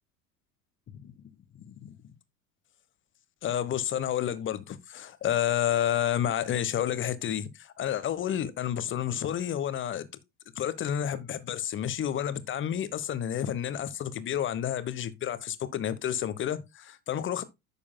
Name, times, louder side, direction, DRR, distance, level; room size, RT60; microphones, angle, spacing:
voice 1, 1.6-2.0 3.4-10.1 10.6-17.4, left 10 dB, 30° left, 1.1 m, -30 dB
10.5 x 6.9 x 2.2 m
figure-of-eight pair, 75°, 43 cm